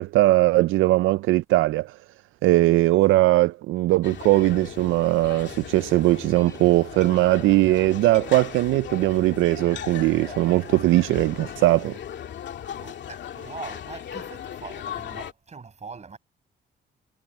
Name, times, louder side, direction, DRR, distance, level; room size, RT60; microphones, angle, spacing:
voice 1, 0.0-2.0 2.4-12.0, right 17 dB, 85° right, 0.4 m, -20 dB
sound 1, 4.0-15.3, left 9 dB, 65° left, 2.3 m, -38 dB
Subway metro underground, 4.0-11.9, left 2 dB, 15° left, 4.8 m, -47 dB
voice 2, 12.8-16.2, right 5 dB, 35° right, 6.2 m, -41 dB
cardioid pair, 90°, 20 cm